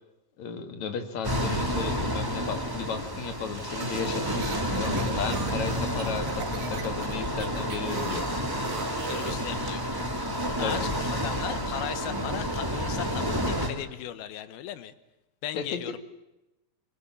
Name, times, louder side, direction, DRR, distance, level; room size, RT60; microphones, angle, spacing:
voice 1, 0.4-8.3 10.6-10.8 15.5-16.0, left 6 dB, 50° left, 7 dB, 3.2 m, -34 dB
sound 1, 1.2-13.7, equal, 5° right, 2.0 m, -30 dB
sound 2, 3.6-9.5, right 6 dB, 55° right, 2.9 m, -39 dB
voice 2, 9.1-9.9 10.6-14.9 15.4-16.0, left 12 dB, 75° left, 13 dB, 3.0 m, -37 dB
23.0 x 22.0 x 9.7 m, 0.96 s
omnidirectional pair, 4.4 m